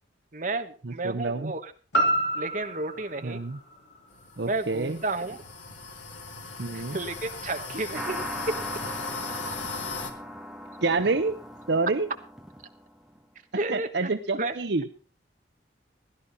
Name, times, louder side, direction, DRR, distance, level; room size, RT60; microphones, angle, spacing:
voice 1, 0.3-1.7 2.3-3.4 4.5-5.4 6.7-8.2 8.5-8.6 13.5-14.5, right 2 dB, 40° right, 7 dB, 1.1 m, -32 dB
voice 2, 0.8-1.5 3.2-3.6 4.4-5.0 6.6-7.0 10.8-11.4 11.7-12.1 13.7-14.9, right 3 dB, 65° right, 9 dB, 0.8 m, -27 dB
sound 1, 1.9-6.0 6.5-6.6, right 1 dB, 65° left, 2.9 m, -30 dB
sound 2, 4.1-10.1, left 3 dB, 90° left, 2.0 m, -38 dB
sound 3, 7.9-13.2, equal, ahead, 1.4 m, -39 dB
16.0 x 11.5 x 4.0 m, 0.36 s
head